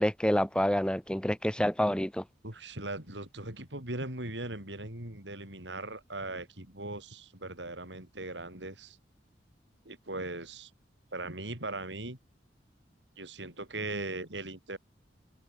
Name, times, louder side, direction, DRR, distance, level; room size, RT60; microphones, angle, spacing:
voice 1, 0.0-2.2, equal, 5° left, 1.4 m, -28 dB
voice 2, 2.4-9.0 9.9-10.7 11.1-12.2 13.2-14.8, right 2 dB, 90° right, 7.3 m, -39 dB
head